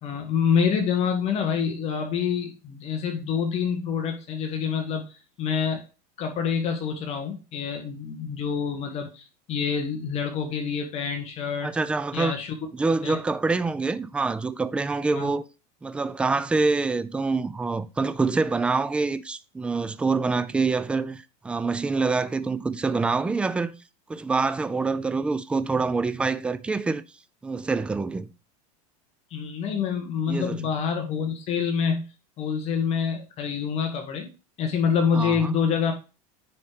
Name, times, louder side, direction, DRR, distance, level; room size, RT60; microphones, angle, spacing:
voice 1, 0.0-5.8 6.2-11.7 12.1-12.5 13.0-13.2 15.1-15.3 29.3-32.0 32.4-34.3 34.6-35.9, left 6 dB, 35° left, 1.7 m, -27 dB
voice 2, 11.6-12.3 12.7-15.4 15.8-23.7 24.1-27.0 27.4-28.3 30.3-30.6 35.1-35.6, right 4 dB, 5° right, 0.3 m, -26 dB
9.6 x 4.2 x 5.0 m
supercardioid pair, 155°, 19 cm